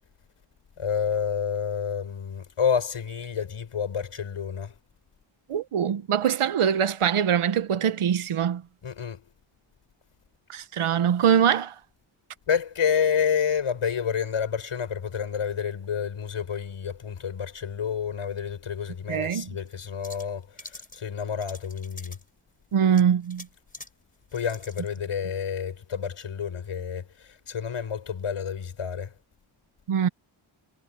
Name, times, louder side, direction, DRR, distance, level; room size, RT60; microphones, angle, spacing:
voice 1, 0.8-4.7 8.8-9.2 12.5-22.2 24.3-29.1, left 7 dB, 80° left, 4.7 m, -29 dB
voice 2, 5.5-8.6 10.5-11.7 19.1-19.6 22.7-23.5 29.9-30.1, right 8 dB, 80° right, 1.2 m, -23 dB
sound 1, 19.7-19.8 20.0-21.0 21.4-22.3 22.9-23.9 24.3-25.0, left 2 dB, 15° left, 3.7 m, -45 dB
wide cardioid pair, 85°, 50 cm